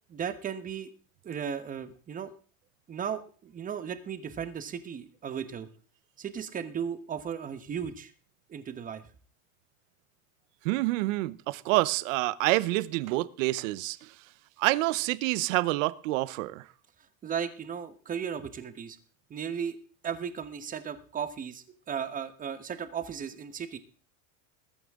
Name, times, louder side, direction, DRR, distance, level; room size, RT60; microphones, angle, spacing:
voice 1, 0.1-0.9 1.2-2.3 2.9-5.7 6.2-8.1 8.5-9.0 17.2-19.0 19.3-19.8 20.0-23.8, right 7 dB, 20° right, 1.1 m, -35 dB
voice 2, 10.6-14.1 14.6-16.6, right 19 dB, 65° right, 0.8 m, -27 dB
21.0 x 9.0 x 3.6 m
supercardioid pair, 155°, 41 cm